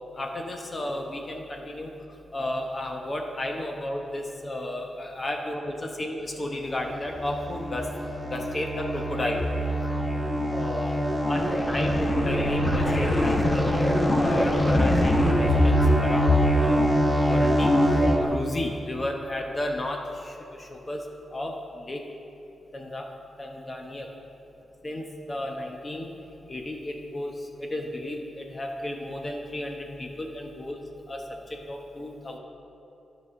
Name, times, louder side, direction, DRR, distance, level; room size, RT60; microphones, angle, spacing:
voice 1, 0.2-1.9 2.3-7.9 8.2-9.4 10.1-10.2 10.5-11.0 11.3-13.7 14.2-16.8 17.3-17.8 18.2-22.0 22.7-23.1 23.4-24.1 24.8-26.1 26.5-30.8 31.1-31.4 31.7-32.4, left 1 dB, 40° left, 1 dB, 1.0 m, -33 dB
sound 1, 6.8-18.2, equal, 15° left, 1.2 m, -23 dB
10.5 x 4.1 x 6.3 m, 2.8 s
cardioid pair, 55°, 0 cm